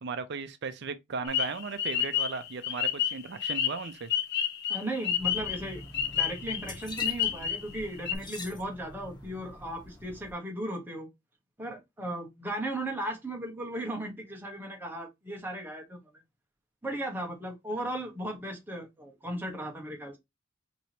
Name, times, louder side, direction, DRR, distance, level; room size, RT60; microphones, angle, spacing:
voice 1, 0.0-4.1, right 4 dB, 55° right, 0.6 m, -36 dB
sound 1, 1.3-7.8 8.1-8.2, left 9 dB, 55° left, 0.7 m, -30 dB
voice 2, 4.7-5.8 6.1-11.1 11.6-16.1 16.8-20.2, right 1 dB, 10° right, 1.2 m, -36 dB
sound 2, 5.2-10.3, left 1 dB, 20° left, 1.0 m, -45 dB
4.8 x 3.0 x 2.8 m
head